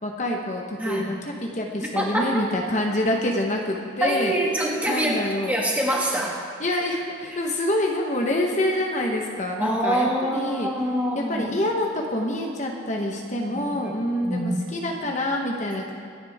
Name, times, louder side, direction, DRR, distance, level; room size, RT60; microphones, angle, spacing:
voice 1, 0.0-4.4 4.9-5.6 6.6-10.7 11.1-15.9, left 1 dB, 35° left, 0 dB, 1.1 m, -26 dB
voice 2, 0.8-1.2 1.8-2.4 4.0-6.4 9.6-11.5 13.5-14.6, right 1 dB, 5° right, -3 dB, 2.1 m, -25 dB
26.5 x 10.5 x 3.6 m, 2.2 s
head